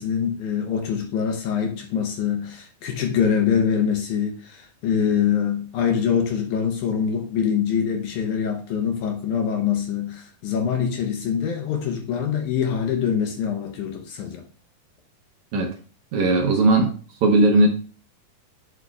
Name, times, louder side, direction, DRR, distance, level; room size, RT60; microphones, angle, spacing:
voice 1, 0.0-14.5, left 7 dB, 75° left, 1.8 m, -24 dB
voice 2, 16.1-16.9 17.2-17.7, right 2 dB, 70° right, 1.8 m, -17 dB
8.2 x 7.3 x 2.4 m
omnidirectional pair, 4.5 m